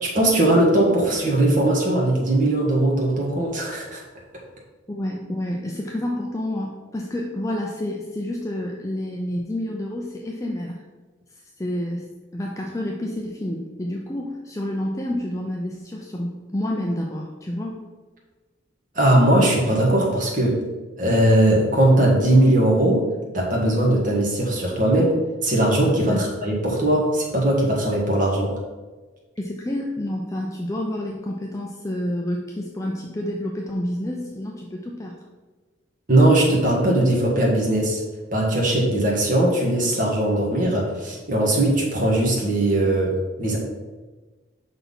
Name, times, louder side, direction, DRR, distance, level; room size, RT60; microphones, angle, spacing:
voice 1, 0.0-4.0 18.9-20.6 21.0-23.0 23.3-28.5 36.1-38.0 38.3-43.6, right 1 dB, 45° right, -2 dB, 1.6 m, -19 dB
voice 2, 4.9-10.8 11.6-17.8 26.1-26.3 29.4-35.2, left 1 dB, 15° left, -1 dB, 0.6 m, -29 dB
5.7 x 4.2 x 5.4 m, 1.3 s
head